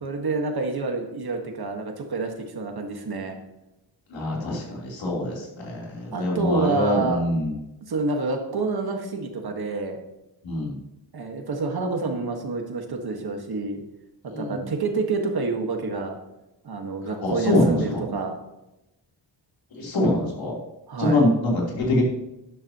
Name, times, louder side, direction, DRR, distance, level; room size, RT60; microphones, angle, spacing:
voice 1, 0.0-3.4 6.1-7.2 7.9-10.0 11.1-13.8 14.4-16.2 16.6-18.3 20.9-21.2, right 3 dB, 55° right, 3 dB, 1.7 m, -28 dB
voice 2, 4.1-7.6 10.4-10.8 14.3-14.6 17.2-18.1 19.8-20.6 21.0-22.0, left 1 dB, 85° left, -4 dB, 3.7 m, -24 dB
12.0 x 11.0 x 3.0 m, 0.94 s
wide cardioid pair, 170°, 45 cm